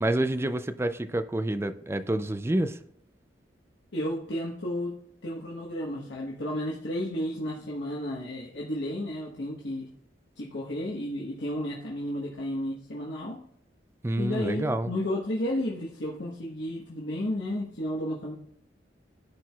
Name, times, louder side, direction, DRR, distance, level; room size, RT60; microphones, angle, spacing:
voice 1, 0.0-2.8 14.0-14.9, right 1 dB, 15° right, 9 dB, 0.4 m, -28 dB
voice 2, 3.9-9.9 10.4-13.4 14.2-18.3, left 1 dB, 75° left, -4 dB, 1.2 m, -32 dB
14.0 x 4.6 x 2.3 m, 0.69 s
head